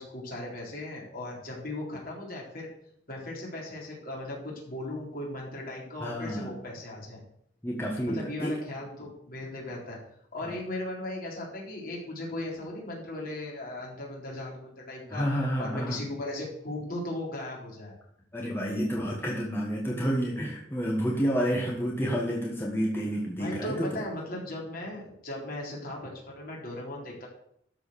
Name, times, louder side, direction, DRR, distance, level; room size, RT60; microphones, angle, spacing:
voice 1, 0.0-2.7 3.1-7.2 8.0-10.0 10.3-15.3 15.6-17.9 23.4-27.3, left 1 dB, 55° left, -3 dB, 3.9 m, -37 dB
voice 2, 6.0-6.5 7.6-8.6 10.4-10.5 15.1-16.0 18.3-23.9, equal, 15° left, -3 dB, 1.4 m, -29 dB
13.0 x 4.8 x 6.3 m, 0.69 s
head